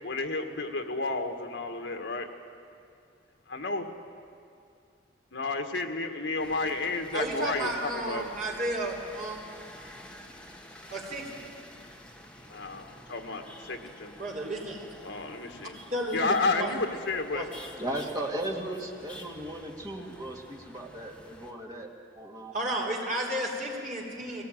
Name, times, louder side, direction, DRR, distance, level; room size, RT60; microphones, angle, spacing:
voice 1, 0.0-2.3 3.5-3.9 5.3-8.3 12.5-14.1 15.0-15.8 16.1-17.5, left 3 dB, 65° left, 5 dB, 1.7 m, -31 dB
sound 1, 6.4-21.5, left 1 dB, 5° left, 1.1 m, -49 dB
voice 2, 7.1-9.4 10.9-11.5 14.2-14.8 15.9-16.7 17.3-17.7 22.5-24.4, right 1 dB, 40° right, -2 dB, 3.6 m, -33 dB
voice 3, 17.8-21.9 22.2-22.6, right 1 dB, 20° right, -1 dB, 2.1 m, -36 dB
21.5 x 17.5 x 9.2 m, 2.4 s
head